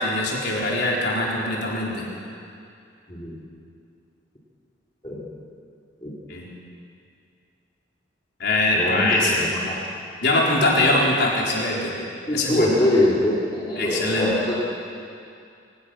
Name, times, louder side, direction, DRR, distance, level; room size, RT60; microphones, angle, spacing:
voice 1, 0.0-2.1 6.3-6.4 8.4-9.4 10.2-11.9 12.3-12.7 13.8-14.3, left 2 dB, 55° left, -4 dB, 4.5 m, -22 dB
voice 2, 8.7-9.7 12.3-14.7, left 1 dB, 25° left, -6 dB, 3.1 m, -23 dB
24.5 x 18.5 x 6.5 m, 2.4 s
head